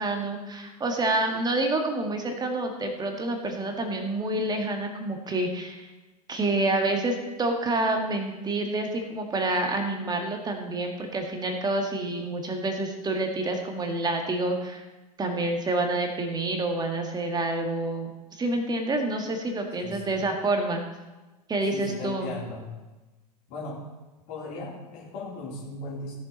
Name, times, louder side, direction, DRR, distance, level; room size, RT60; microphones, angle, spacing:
voice 1, 0.0-5.9 6.3-14.9 15.2-20.8 21.5-22.3, right 2 dB, 20° right, 3 dB, 1.9 m, -28 dB
voice 2, 19.8-20.2 21.6-22.7 23.5-23.8 24.3-26.1, left 2 dB, 50° left, -4 dB, 3.9 m, -37 dB
17.0 x 7.3 x 4.2 m, 1.1 s
figure-of-eight pair, 85°, 21 cm